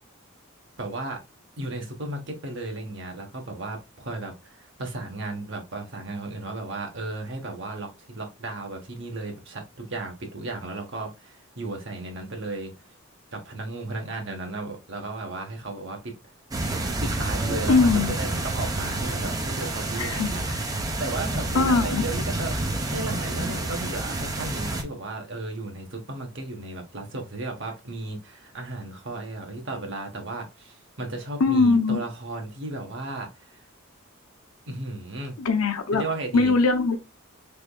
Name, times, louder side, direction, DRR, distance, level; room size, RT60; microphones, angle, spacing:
voice 1, 0.8-1.2 1.6-12.7 13.3-16.1 17.0-20.4 21.0-33.6 34.7-35.3 35.9-36.5, right 2 dB, 60° right, 1.1 m, -34 dB
sound 1, 16.5-24.8, right 2 dB, 15° right, 0.5 m, -29 dB
voice 2, 17.7-18.1 20.0-20.3 21.5-22.0 31.4-32.0 35.4-36.0 36.3-37.0, left 3 dB, 85° left, 0.7 m, -21 dB
3.5 x 3.5 x 2.3 m
head